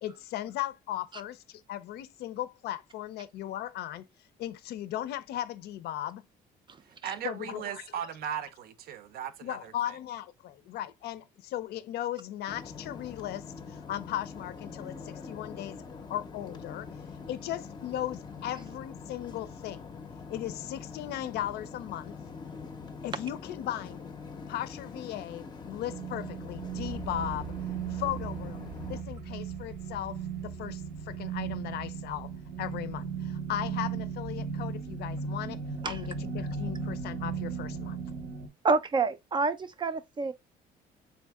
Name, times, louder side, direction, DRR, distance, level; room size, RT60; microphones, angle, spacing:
voice 1, 0.0-4.1 4.4-6.2 7.2-7.8 9.4-15.8 16.1-16.9 17.3-19.9 20.3-22.1 23.0-24.0 24.5-27.5 27.9-32.3 32.6-38.0, left 12 dB, 75° left, 0.5 m, -37 dB
voice 2, 7.0-10.0, right 9 dB, 65° right, 0.6 m, -37 dB
sound 1, 12.5-29.0, left 5 dB, 25° left, 0.5 m, -44 dB
sound 2, 25.8-38.5, right 6 dB, 90° right, 1.0 m, -36 dB
voice 3, 38.6-40.3, right 4 dB, 30° right, 0.3 m, -28 dB
3.6 x 2.6 x 3.4 m
cardioid pair, 110°, 17 cm